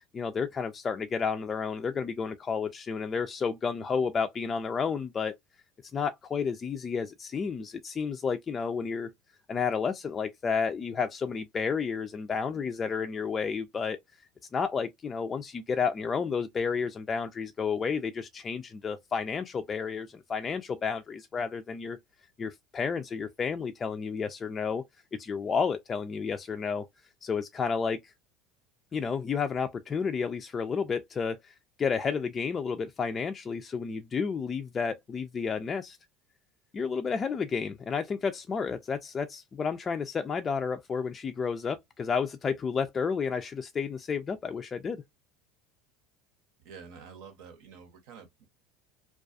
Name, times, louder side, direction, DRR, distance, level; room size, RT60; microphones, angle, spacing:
voice 1, 0.1-5.4 5.9-9.1 9.5-14.0 14.5-22.0 22.4-24.8 25.2-26.9 27.2-28.1 28.9-36.0 36.7-45.0, left 5 dB, 30° left, 0.3 m, -31 dB
voice 2, 46.6-48.5, right 6 dB, 70° right, 0.9 m, -48 dB
2.3 x 2.3 x 2.4 m
supercardioid pair, 95°, 0 cm